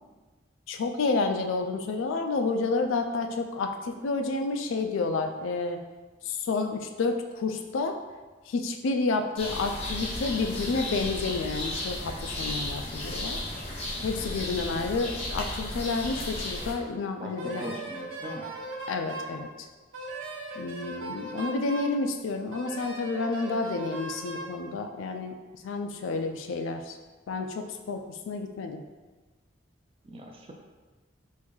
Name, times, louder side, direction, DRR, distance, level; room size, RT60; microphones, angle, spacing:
voice 1, 0.7-5.8 6.2-8.0 8.5-13.4 14.0-17.7 18.9-19.7 20.6-27.0 27.3-28.8, left 3 dB, 80° left, 6 dB, 0.3 m, -30 dB
sound 1, 9.4-16.7, left 1 dB, 30° left, 0.6 m, -34 dB
voice 2, 17.2-18.5 30.0-30.5, right 1 dB, 30° right, 1 dB, 0.3 m, -40 dB
Wind instrument woodwind instrument, 17.4-19.4 19.9-22.0 22.5-24.5, right 2 dB, 90° right, 0.6 m, -38 dB
3.7 x 2.6 x 3.0 m, 1.3 s
head